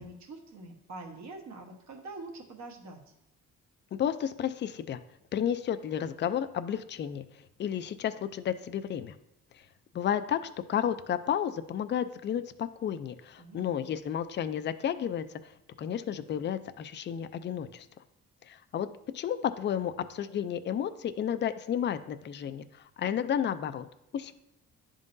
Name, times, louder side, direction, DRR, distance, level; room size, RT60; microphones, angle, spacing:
voice 1, 0.0-3.1 13.4-13.8, right 2 dB, 65° right, 2 dB, 1.2 m, -45 dB
voice 2, 3.9-5.0 5.3-7.2 7.6-9.2 9.9-15.4 15.8-17.9 18.4-18.9 19.1-23.9 24.1-24.3, left 9 dB, 40° left, 12 dB, 0.4 m, -32 dB
10.5 x 3.7 x 2.6 m, 0.82 s
cardioid pair, 90°, 30 cm